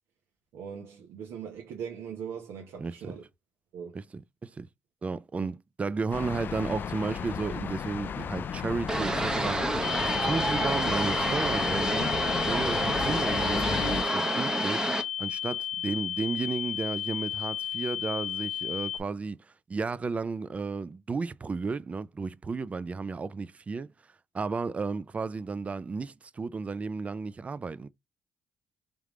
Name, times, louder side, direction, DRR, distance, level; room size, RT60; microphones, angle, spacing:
voice 1, 0.5-3.2 3.7-4.0 5.4-5.5, right 7 dB, 80° right, 1.1 m, -40 dB
voice 2, 2.8-3.2 3.9-4.7 5.0-12.1 12.4-23.9 24.3-27.9, right 4 dB, 30° right, 0.4 m, -33 dB
sound 1, 6.1-14.0, left 7 dB, 50° left, 0.3 m, -34 dB
sound 2, 8.9-15.0, right 2 dB, 15° right, 0.8 m, -29 dB
sound 3, 9.8-19.0, left 11 dB, 70° left, 0.8 m, -33 dB
3.6 x 3.4 x 3.1 m
supercardioid pair, 75°, 4 cm